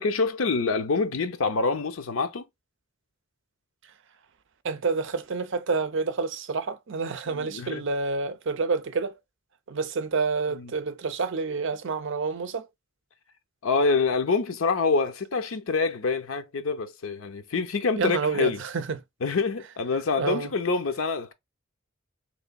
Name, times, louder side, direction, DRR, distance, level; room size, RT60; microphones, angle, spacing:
voice 1, 0.0-2.4 7.3-7.9 10.5-10.7 13.6-18.6 19.2-21.3, left 4 dB, 85° left, 0.7 m, -26 dB
voice 2, 4.6-9.1 9.7-12.7 18.0-19.0 20.2-20.5, right 4 dB, 65° right, 0.6 m, -28 dB
3.8 x 3.1 x 2.2 m
head